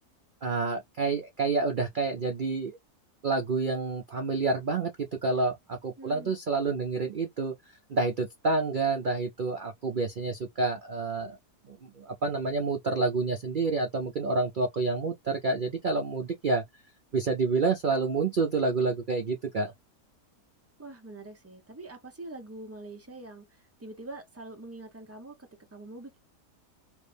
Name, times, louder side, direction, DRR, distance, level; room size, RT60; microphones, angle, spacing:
voice 1, 0.4-2.8 3.2-7.5 7.9-11.4 11.7-16.6 17.1-19.7, right 3 dB, 90° right, 0.4 m, -28 dB
voice 2, 6.0-6.3 20.8-26.3, right 2 dB, 20° right, 0.3 m, -44 dB
3.2 x 2.6 x 3.3 m
omnidirectional pair, 1.7 m